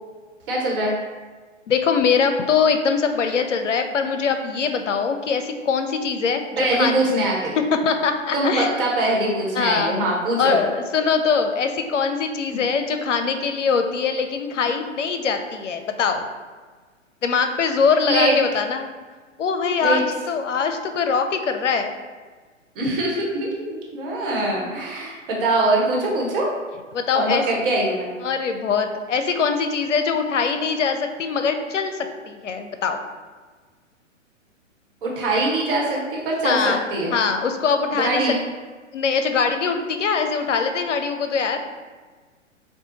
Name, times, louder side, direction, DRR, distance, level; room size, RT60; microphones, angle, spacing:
voice 1, 0.5-0.9 6.6-7.6 8.3-10.6 12.5-12.6 18.1-18.3 19.8-20.0 22.7-26.4 27.1-28.1 35.0-37.1 37.9-38.4, right 2 dB, 45° right, -2 dB, 1.2 m, -23 dB
voice 2, 1.7-7.0 7.7-8.7 9.5-9.9 10.4-16.2 17.2-18.9 19.4-21.9 25.0-25.1 26.9-27.4 28.2-33.0 36.4-36.8 37.1-38.2 38.9-41.6, left 5 dB, 70° left, 7 dB, 0.6 m, -22 dB
6.7 x 2.3 x 2.8 m, 1.4 s
figure-of-eight pair, 115°, 39 cm